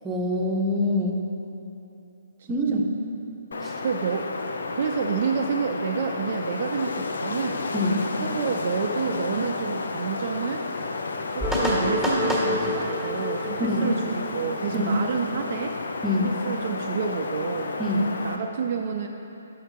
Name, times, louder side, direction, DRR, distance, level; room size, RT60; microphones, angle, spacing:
voice 1, 0.0-1.2 2.5-2.8 3.6-3.7 7.7-8.1 13.6-14.0 14.7-14.9 16.0-16.3 17.8-18.1, left 1 dB, 15° right, -1 dB, 0.9 m, -24 dB
Wind, 3.5-18.4, left 3 dB, 70° left, 0.5 m, -32 dB
voice 2, 3.8-4.3 4.7-7.6 8.2-10.7 11.3-15.8 16.2-17.7 18.2-19.1, right 6 dB, 50° right, 3 dB, 0.4 m, -29 dB
sound 1, 11.4-15.1, left 1 dB, 5° left, 1.5 m, -27 dB
6.4 x 5.8 x 5.6 m, 2.9 s
figure-of-eight pair, 135°, 0 cm